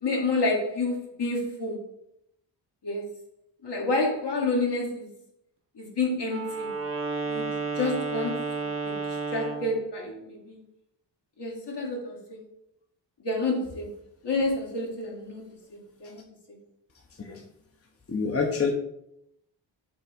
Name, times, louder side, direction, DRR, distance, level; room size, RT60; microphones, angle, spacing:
voice 1, 0.0-1.8 2.8-3.0 3.6-5.1 5.8-6.7 7.3-7.5 7.8-8.5 8.8-8.9 9.3-10.6 11.4-12.4 13.2-13.9 14.2-15.4 16.0-16.2, left 2 dB, 60° left, -1 dB, 1.8 m, -28 dB
Wind instrument woodwind instrument, 6.2-9.8, right 3 dB, 30° right, 0.8 m, -31 dB
voice 2, 18.1-18.7, left 5 dB, 30° left, 1 dB, 0.9 m, -27 dB
5.4 x 3.5 x 5.1 m, 0.80 s
cardioid pair, 65°, 46 cm